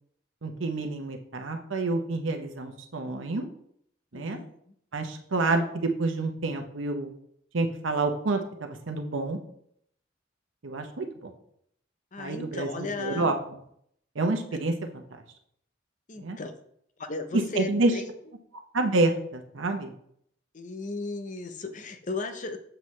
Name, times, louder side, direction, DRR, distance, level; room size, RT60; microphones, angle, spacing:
voice 1, 0.4-3.5 4.1-4.4 4.9-7.1 7.5-9.4 10.6-11.3 12.2-13.6 14.2-15.0 16.2-16.4 17.3-17.9 18.7-19.9, right 2 dB, 85° right, 5 dB, 0.8 m, -28 dB
voice 2, 4.1-4.4 12.1-13.3 14.5-14.6 16.1-16.5 17.0-18.1 20.5-22.6, left 3 dB, 40° left, 7 dB, 0.6 m, -35 dB
7.5 x 6.7 x 3.2 m, 0.70 s
head